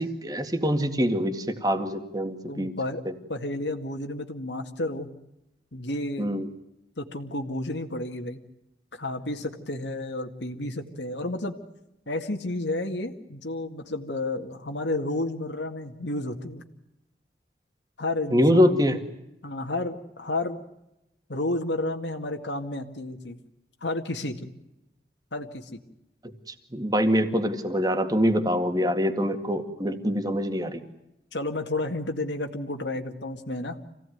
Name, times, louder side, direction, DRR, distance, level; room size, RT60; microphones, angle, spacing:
voice 1, 0.0-2.7 6.2-6.5 18.3-19.0 26.5-30.8, equal, 20° right, 7 dB, 2.0 m, -24 dB
voice 2, 2.5-3.0 3.3-5.1 5.7-6.3 7.0-8.4 8.9-11.6 12.1-16.6 18.0-18.8 19.4-20.6 21.3-23.4 23.8-24.5 25.3-25.8 31.3-33.8, left 2 dB, 85° left, 3 dB, 2.1 m, -31 dB
26.5 x 17.0 x 9.4 m, 0.88 s
head